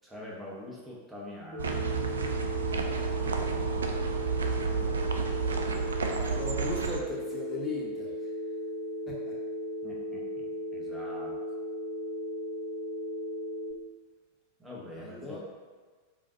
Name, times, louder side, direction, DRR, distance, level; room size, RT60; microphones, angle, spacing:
voice 1, 0.0-1.8 9.8-11.4 14.6-15.4, left 1 dB, 10° right, -4 dB, 0.9 m, -44 dB
Telephone, 1.5-13.7, left 1 dB, 40° right, 0.8 m, -36 dB
sound 1, 1.6-7.0, right 5 dB, 70° right, 0.3 m, -31 dB
voice 2, 4.7-5.0 6.2-8.3 9.1-9.4 14.9-15.4, left 2 dB, 15° left, -5 dB, 1.1 m, -38 dB
4.8 x 2.5 x 2.6 m, 1.5 s
figure-of-eight pair, 90°, 0 cm